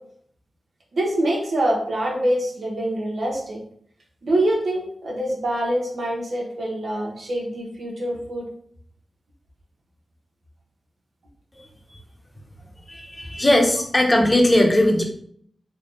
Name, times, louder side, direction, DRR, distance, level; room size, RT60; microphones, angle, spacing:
voice 1, 0.9-3.6 4.2-8.4, right 1 dB, 75° right, -2 dB, 1.1 m, -25 dB
voice 2, 13.3-15.0, left 1 dB, 25° left, 1 dB, 0.9 m, -17 dB
3.6 x 2.3 x 3.8 m, 0.63 s
cardioid pair, 50°, 0 cm